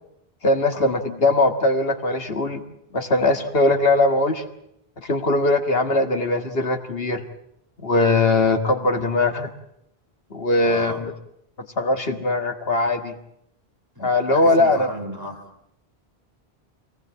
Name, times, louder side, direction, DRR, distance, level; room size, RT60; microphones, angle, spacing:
voice 1, 0.4-2.6 2.9-4.4 5.0-7.2 7.8-9.5 10.3-11.1 11.8-13.1 14.0-14.9, left 2 dB, 70° left, 5 dB, 2.0 m, -20 dB
voice 2, 10.6-11.0 14.0-15.5, right 1 dB, 20° right, 1 dB, 4.0 m, -35 dB
26.0 x 18.5 x 8.6 m, 0.78 s
omnidirectional pair, 1.0 m